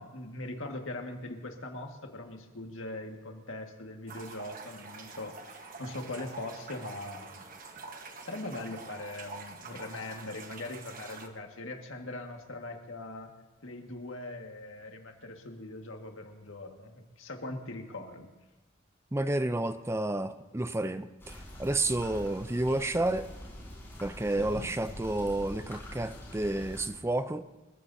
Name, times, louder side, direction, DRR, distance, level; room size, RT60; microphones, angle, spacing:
voice 1, 0.0-7.5 8.0-13.3 13.6-18.3 24.4-24.7, left 2 dB, 80° left, 1.8 m, -41 dB
sound 1, 4.1-11.3, right 4 dB, 45° right, 1.2 m, -46 dB
voice 2, 19.1-23.3 24.0-27.4, right 2 dB, 15° right, 0.5 m, -30 dB
sound 2, 21.2-26.9, equal, 10° left, 4.5 m, -45 dB
29.0 x 14.5 x 2.7 m
head